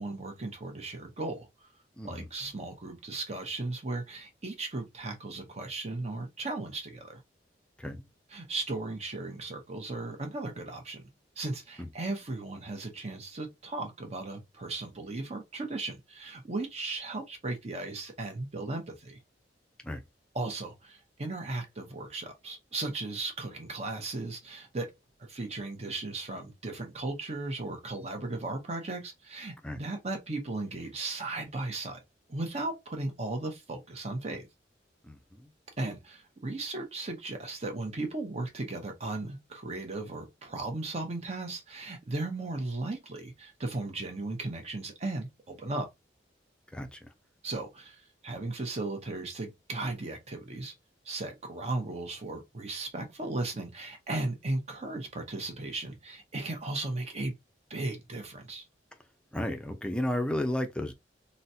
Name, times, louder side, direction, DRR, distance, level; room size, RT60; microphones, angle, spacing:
voice 1, 0.0-1.5 2.0-7.2 8.3-11.0 11.4-19.2 20.3-24.9 25.2-32.0 32.3-34.5 35.8-45.9 47.4-50.7 51.1-57.4 57.7-58.6, right 2 dB, 35° right, 0.8 m, -36 dB
voice 2, 35.1-35.4 46.7-47.0 59.3-60.9, left 1 dB, 5° left, 0.5 m, -33 dB
4.0 x 2.1 x 2.7 m
head